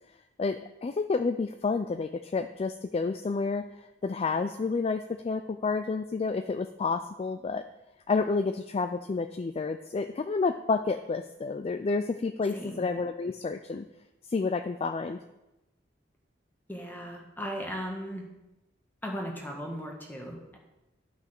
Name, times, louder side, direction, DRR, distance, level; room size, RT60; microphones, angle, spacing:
voice 1, 0.4-3.6 4.0-7.6 8.1-13.9 14.3-15.2, left 4 dB, 30° left, 9 dB, 0.3 m, -30 dB
voice 2, 12.5-12.8 16.7-18.3 19.0-20.6, equal, 10° left, 0 dB, 1.8 m, -37 dB
11.5 x 6.0 x 5.9 m, 0.98 s
head